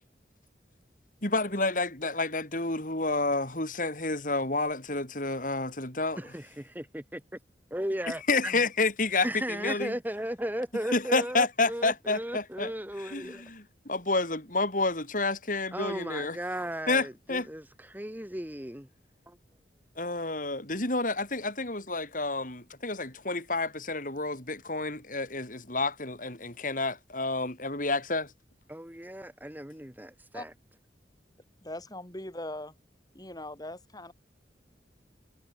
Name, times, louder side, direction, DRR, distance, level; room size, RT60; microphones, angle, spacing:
voice 1, 1.2-6.2 8.3-9.3 9.6-9.9 10.9-12.7 13.0-16.4 16.9-17.5 20.0-28.3, left 3 dB, 50° left, 6.4 m, -29 dB
voice 2, 6.2-7.2 7.7-8.6 9.2-13.5 15.7-18.9 19.3-19.4 28.7-30.5, right 1 dB, 10° right, 3.3 m, -36 dB
voice 3, 31.6-32.7 33.1-34.1, left 1 dB, 20° left, 7.1 m, -40 dB
head